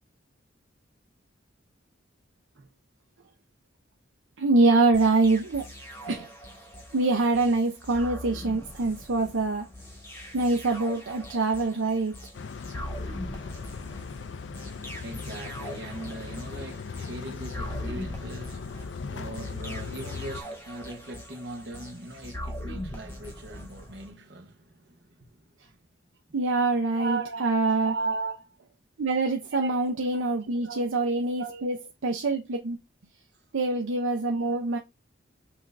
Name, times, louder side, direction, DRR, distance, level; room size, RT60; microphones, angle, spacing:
voice 1, 4.4-5.7 6.1-6.3 6.9-9.7 10.3-12.1 26.3-27.9 29.0-31.8 32.0-32.8 33.5-34.8, right 3 dB, 85° right, 0.6 m, -25 dB
sound 1, 4.9-24.1, left 1 dB, 10° left, 1.0 m, -41 dB
sound 2, 12.3-20.4, left 5 dB, 65° left, 0.4 m, -38 dB
voice 2, 15.0-25.5 26.9-28.6 29.5-29.8 30.1-31.9 34.1-34.8, right 3 dB, 55° right, 0.9 m, -39 dB
6.1 x 2.5 x 3.3 m
head